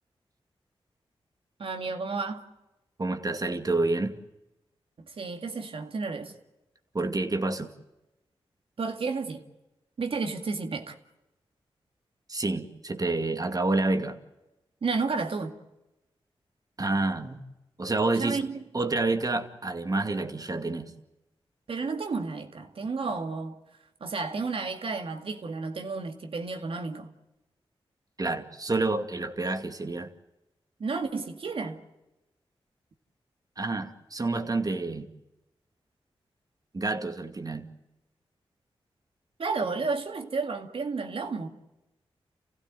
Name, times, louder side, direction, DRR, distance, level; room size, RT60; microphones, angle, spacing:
voice 1, 1.6-2.5 5.0-6.3 8.8-9.4 10.0-11.0 14.8-15.5 18.2-18.6 21.7-23.6 24.0-27.1 30.8-31.8 39.4-41.5, right 4 dB, 65° right, 2.1 m, -32 dB
voice 2, 3.0-4.1 6.9-7.7 12.3-14.2 16.8-17.4 17.8-18.4 18.7-20.9 28.2-30.1 33.6-35.1 36.7-37.6, right 2 dB, 40° right, 2.3 m, -28 dB
29.0 x 16.0 x 9.2 m
cardioid pair, 60°, 10 cm